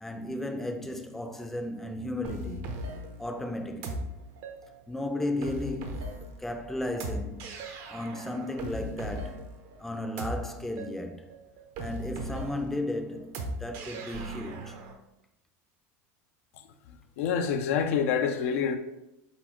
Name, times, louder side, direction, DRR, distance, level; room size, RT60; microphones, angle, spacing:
voice 1, 0.0-2.7 3.2-4.1 4.9-6.1 6.4-7.5 7.9-9.5 9.8-11.3 11.8-14.8, left 1 dB, 5° left, 0.5 m, -34 dB
sound 1, 2.2-14.9, right 1 dB, 55° right, 0.8 m, -39 dB
voice 2, 17.2-18.8, left 7 dB, 75° left, 0.5 m, -26 dB
4.1 x 4.1 x 3.0 m
supercardioid pair, 120°, 8 cm